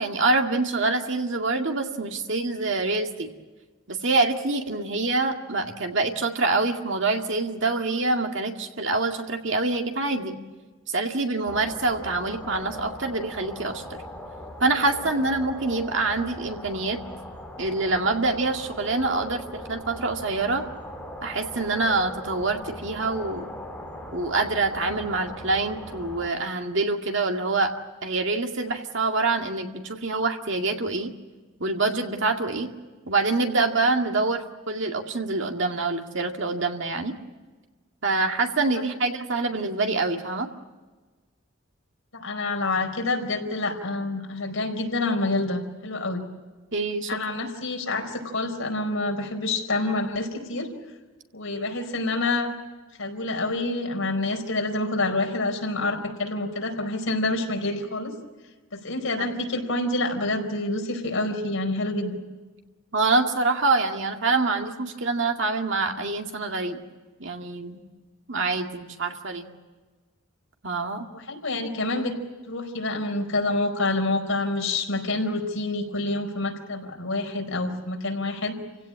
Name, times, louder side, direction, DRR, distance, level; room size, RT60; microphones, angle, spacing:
voice 1, 0.0-3.3 3.9-10.4 10.9-14.0 14.6-17.0 17.6-20.6 21.2-23.5 24.1-27.7 28.0-31.1 31.6-32.7 33.1-37.1 38.0-40.5 46.7-47.2 59.2-59.3 62.9-66.8 67.2-67.8 68.3-69.5 70.6-71.1, right 3 dB, 60° right, 3 dB, 2.1 m, -25 dB
sound 1, 11.5-26.3, left 1 dB, 5° left, 3.3 m, -40 dB
voice 2, 42.1-46.2 47.1-50.7 51.3-52.5 53.0-58.1 58.7-62.2 71.1-72.1 72.5-78.6, left 2 dB, 70° left, 2 dB, 4.7 m, -27 dB
29.0 x 17.0 x 8.8 m, 1.3 s
head